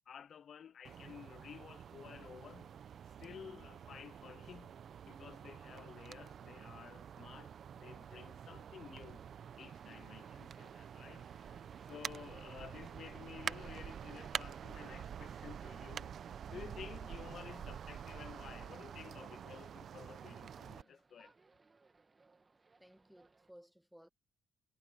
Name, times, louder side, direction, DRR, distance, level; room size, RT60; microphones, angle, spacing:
voice 1, 0.1-2.8 3.1-9.2 9.6-16.2 16.5-21.3, left 8 dB, 55° left, 0.5 m, -53 dB
sound 1, 0.8-20.8, right 8 dB, 60° right, 0.8 m, -47 dB
voice 2, 3.2-3.7 11.9-12.1 16.5-16.9 22.8-24.1, equal, ahead, 0.5 m, -59 dB
sound 2, 9.6-23.5, right 3 dB, 30° right, 1.7 m, -68 dB
cardioid pair, 90°, 0 cm